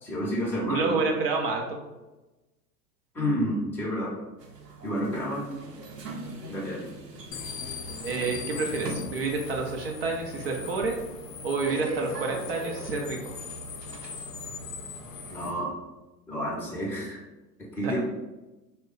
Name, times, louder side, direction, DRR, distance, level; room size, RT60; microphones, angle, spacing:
voice 1, 0.0-0.9 3.1-4.1 4.8-5.5 6.5-6.9 15.3-15.7 16.3-17.2 17.8-18.0, equal, 5° left, -6 dB, 0.6 m, -29 dB
voice 2, 0.6-1.8 8.0-11.0 11.4-13.4 17.8-18.0, right 4 dB, 40° right, 1 dB, 0.5 m, -29 dB
sound 1, 4.4-15.6, right 2 dB, 80° right, 0.7 m, -41 dB
sound 2, 7.3-15.5, left 5 dB, 55° left, 0.5 m, -40 dB
3.0 x 2.1 x 3.8 m, 1.1 s
figure-of-eight pair, 95°, 48 cm